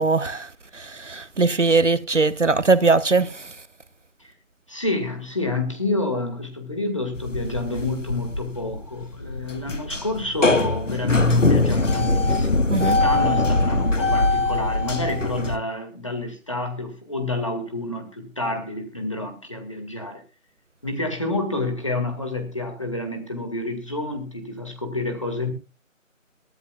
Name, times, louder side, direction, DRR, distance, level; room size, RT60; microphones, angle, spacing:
voice 1, 0.0-3.5 12.7-13.0, right 3 dB, 65° right, 1.2 m, -21 dB
voice 2, 4.7-20.2 20.8-25.5, left 2 dB, 25° left, 2.0 m, -29 dB
sound 1, 7.1-15.6, left 2 dB, 65° left, 1.7 m, -22 dB
23.0 x 13.0 x 2.4 m
figure-of-eight pair, 175°, 40 cm